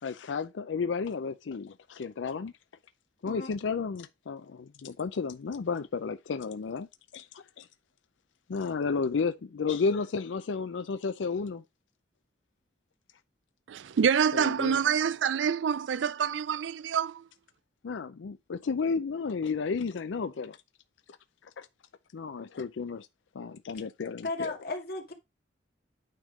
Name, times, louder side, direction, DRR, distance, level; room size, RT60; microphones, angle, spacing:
voice 1, 0.0-2.5 3.2-6.9 7.1-7.7 8.5-11.6 14.3-14.8 17.8-20.6 21.4-21.7 22.1-23.1 23.3-24.5, left 5 dB, 85° left, 0.4 m, -32 dB
voice 2, 13.7-17.2, right 7 dB, 80° right, 0.4 m, -27 dB
voice 3, 24.2-25.1, left 2 dB, 60° left, 2.0 m, -35 dB
9.1 x 3.6 x 5.0 m
head